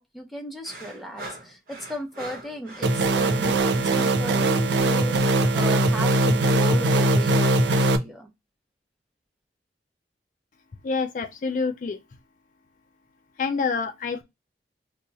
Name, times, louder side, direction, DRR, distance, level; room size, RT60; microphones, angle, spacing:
voice 1, 0.0-5.2 5.5-8.3, right 1 dB, ahead, 0.7 m, -36 dB
sound 1, 0.6-5.7, right 2 dB, 55° right, 1.0 m, -42 dB
sound 2, 2.8-8.0, right 2 dB, 80° right, 0.5 m, -21 dB
voice 2, 10.8-12.0 13.4-14.2, left 4 dB, 45° left, 0.3 m, -27 dB
2.8 x 2.2 x 4.0 m
head